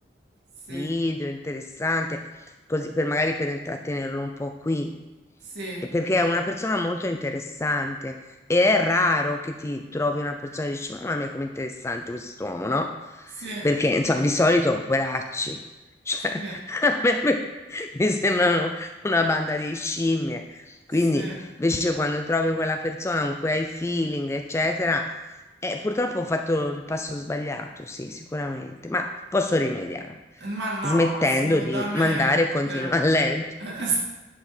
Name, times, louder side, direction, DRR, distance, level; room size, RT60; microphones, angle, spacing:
voice 1, 0.7-2.2 2.7-4.9 5.9-8.2 8.5-12.9 13.4-15.6 16.1-17.4 17.7-20.6 20.9-21.3 21.6-25.1 25.6-30.2 30.8-33.5, left 2 dB, 15° left, 5 dB, 0.4 m, -25 dB
voice 2, 5.4-5.8 13.4-13.7 16.3-16.6 21.1-21.4 30.4-32.9 33.6-34.0, right 2 dB, 70° right, -4 dB, 2.4 m, -32 dB
10.0 x 4.9 x 4.3 m, 1.1 s
head